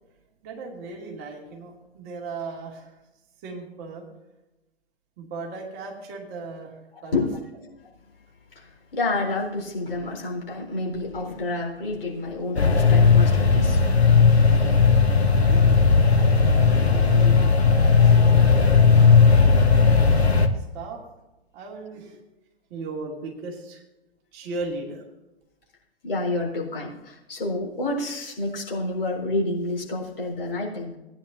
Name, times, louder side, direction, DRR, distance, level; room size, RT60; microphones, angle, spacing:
voice 1, 0.4-2.9 3.4-4.1 5.2-6.7 7.0-7.3 14.5-14.6 15.3-15.8 16.2-20.0 20.5-21.0 21.5-22.2 22.7-23.8 24.3-25.0, right 3 dB, 30° right, -1 dB, 2.7 m, -37 dB
voice 2, 6.9-7.3 8.5-13.8 14.8-15.0 16.0-16.4 26.0-31.0, left 2 dB, 60° left, -1 dB, 4.2 m, -29 dB
sound 1, 12.6-20.5, left 5 dB, 80° left, 1.4 m, -16 dB
18.0 x 10.0 x 2.8 m, 0.99 s
figure-of-eight pair, 115°, 32 cm